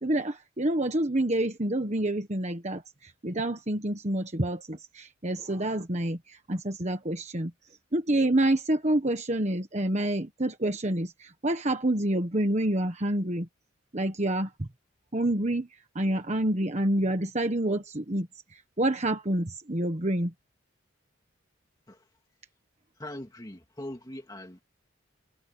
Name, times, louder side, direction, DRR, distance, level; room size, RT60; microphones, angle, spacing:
voice 1, 0.0-7.5 7.9-13.5 13.9-14.7 15.1-20.3, right 1 dB, 35° right, 1.3 m, -28 dB
voice 2, 23.0-24.6, left 1 dB, 20° left, 2.2 m, -41 dB
head